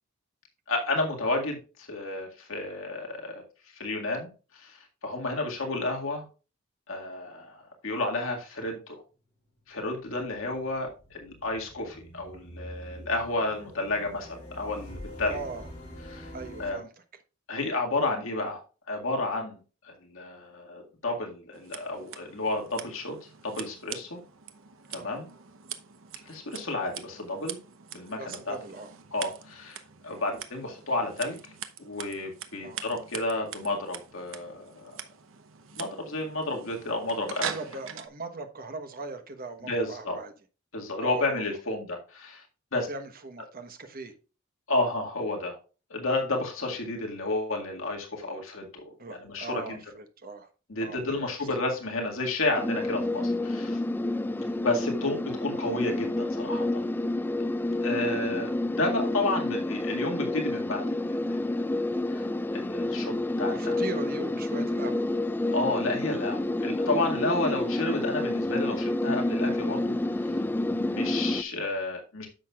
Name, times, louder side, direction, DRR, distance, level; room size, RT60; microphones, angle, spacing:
voice 1, 0.7-3.4 3.8-4.3 4.5-4.8 5.0-6.2 6.9-9.0 9.7-15.4 16.1-16.3 16.6-16.8 17.5-18.6 18.9-19.6 19.8-23.2 23.4-24.2 24.9-25.3 26.3-27.6 27.9-28.6 29.1-29.8 30.0-31.4 31.8-35.0 35.8-37.6 39.6-40.2 40.7-42.4 42.7-42.9 44.7-45.6 45.9-49.8 50.7-53.8 54.6-56.9 57.8-58.5 58.8-61.4 62.1-62.2 62.5-63.9 65.5-69.9 70.2-70.4 70.7-72.3, left 2 dB, 70° left, 2.0 m, -31 dB
sound 1, 9.5-16.7, equal, 40° left, 5.0 m, -45 dB
voice 2, 15.3-15.6 16.3-16.9 25.0-25.2 28.2-28.9 30.1-30.2 32.6-32.9 37.4-40.3 41.0-41.5 42.9-44.1 49.0-50.5 50.8-51.3 54.3-54.6 58.0-58.2 63.5-65.2, right 3 dB, 45° right, 1.2 m, -39 dB
Scissors, 21.5-38.1, right 8 dB, 70° right, 0.9 m, -43 dB
sound 2, 52.6-71.4, left 1 dB, 10° left, 0.3 m, -29 dB
10.5 x 7.0 x 2.4 m
head